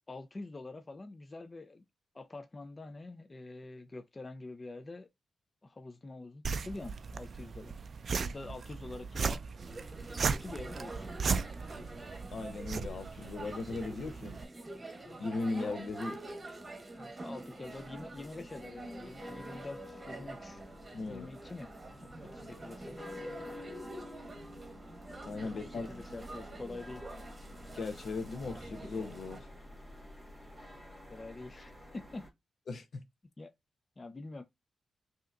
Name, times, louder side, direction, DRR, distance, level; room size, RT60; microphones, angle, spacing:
voice 1, 0.1-1.8 2.1-5.1 5.6-7.8 8.1-9.4 10.3-11.1 17.0-20.6 21.1-21.7 22.0-23.0 23.3-23.7 25.4-27.0 31.1-32.2 33.4-33.5 34.0-34.4, left 2 dB, 30° left, 0.5 m, -46 dB
sound 1, 6.4-14.4, right 5 dB, 55° right, 0.3 m, -37 dB
sound 2, 9.6-29.4, right 2 dB, 35° right, 1.0 m, -47 dB
voice 2, 12.3-14.4 15.2-16.2 20.9-21.3 25.2-25.9 27.7-29.5 32.7-33.0, left 3 dB, 65° left, 0.8 m, -38 dB
sound 3, 17.6-32.3, left 1 dB, 5° right, 1.9 m, -50 dB
5.5 x 2.8 x 2.5 m
cardioid pair, 90°, 0 cm